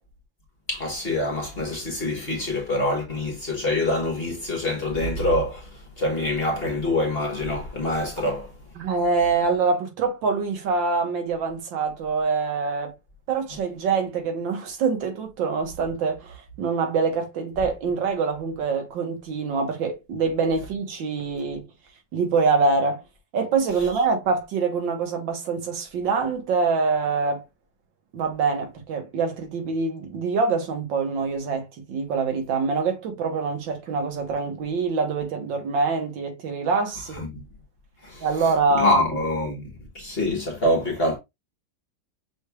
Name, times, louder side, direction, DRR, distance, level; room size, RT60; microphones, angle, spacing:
voice 1, 0.7-8.5 37.1-37.4 38.0-38.5 38.7-41.2, left 1 dB, 35° left, 1.2 m, -25 dB
voice 2, 8.8-12.9 13.3-21.7 22.1-23.0 23.3-27.4 28.1-37.2 38.2-39.0, right 4 dB, 75° right, 1.8 m, -25 dB
6.2 x 3.2 x 2.2 m
omnidirectional pair, 2.1 m